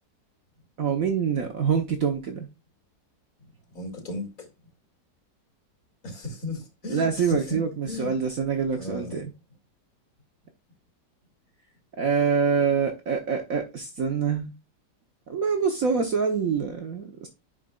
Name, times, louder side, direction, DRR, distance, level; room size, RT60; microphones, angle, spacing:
voice 1, 0.8-2.5 6.9-9.3 12.0-14.5 15.3-17.3, right 6 dB, 55° right, 1.4 m, -25 dB
voice 2, 3.7-4.5 6.0-7.6 7.9-8.1 8.8-9.2, left 2 dB, 50° left, 2.7 m, -35 dB
10.5 x 5.0 x 2.4 m
omnidirectional pair, 1.9 m